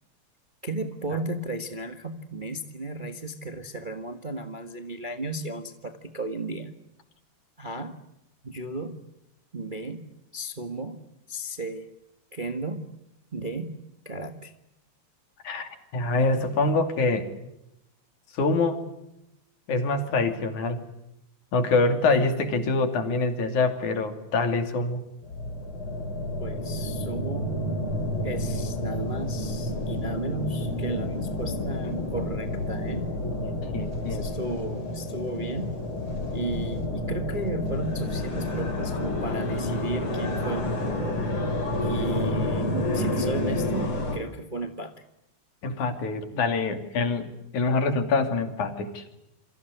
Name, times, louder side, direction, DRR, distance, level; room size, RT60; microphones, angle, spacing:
voice 1, 0.6-6.7 7.6-8.0 8.4-9.0 9.5-11.0 11.3-11.9 12.3-12.9 13.3-13.8 14.0-14.5 26.4-27.6 28.2-33.1 34.0-35.8 36.3-41.2 41.7-45.0, right 2 dB, 25° right, 7 dB, 1.2 m, -34 dB
voice 2, 15.4-17.3 18.4-18.9 19.7-20.8 21.5-25.0 33.3-34.2 45.6-49.0, left 3 dB, 75° left, 7 dB, 4.2 m, -25 dB
sound 1, 25.2-44.2, left 1 dB, 45° left, 5.0 m, -29 dB
28.0 x 24.0 x 8.2 m, 0.84 s
omnidirectional pair, 3.4 m